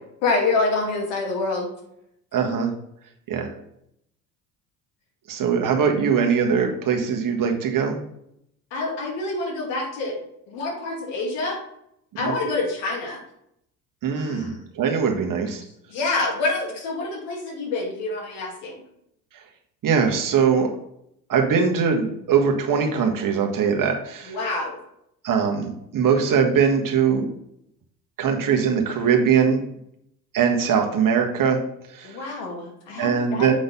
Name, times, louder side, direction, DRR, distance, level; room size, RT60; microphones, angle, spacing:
voice 1, 0.2-1.7 8.7-10.2 10.5-11.6 12.2-13.2 14.2-14.6 15.9-18.8 24.3-24.8 32.0-33.5, left 3 dB, 65° left, 1 dB, 2.4 m, -27 dB
voice 2, 2.3-2.7 3.3-3.5 5.3-8.0 12.2-12.3 14.0-15.6 19.8-20.7 21.3-24.4 25.2-27.3 28.2-29.6 30.3-31.6 31.9-32.2 33.0-33.5, right 6 dB, 40° right, 2 dB, 1.6 m, -21 dB
7.8 x 3.9 x 5.4 m, 0.75 s
hypercardioid pair, 65°, 47 cm